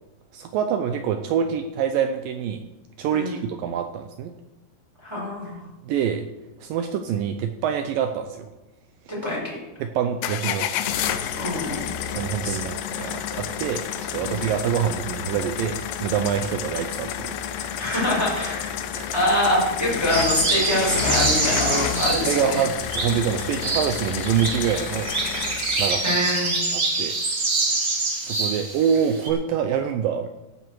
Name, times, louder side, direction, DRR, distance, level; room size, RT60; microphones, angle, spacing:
voice 1, 0.3-2.7 3.0-4.3 5.9-6.3 6.6-8.5 9.8-10.7 12.1-13.8 14.1-17.8 18.9-19.1 22.3-25.1 25.8-26.2 26.7-27.2 28.2-30.3, right 8 dB, 85° right, 7 dB, 2.0 m, -25 dB
voice 2, 3.1-3.4 5.0-5.7 9.1-9.6 11.3-11.9 12.4-12.6 13.0-13.1 14.2-14.4 17.8-18.9 19.1-22.6 26.0-26.6, left 1 dB, 5° right, -6 dB, 4.9 m, -25 dB
sound 1, 10.2-26.1, left 9 dB, 85° left, 2.9 m, -30 dB
sound 2, 20.1-29.3, right 3 dB, 35° right, 1.8 m, -26 dB
16.5 x 9.3 x 4.7 m, 1.1 s
omnidirectional pair, 4.8 m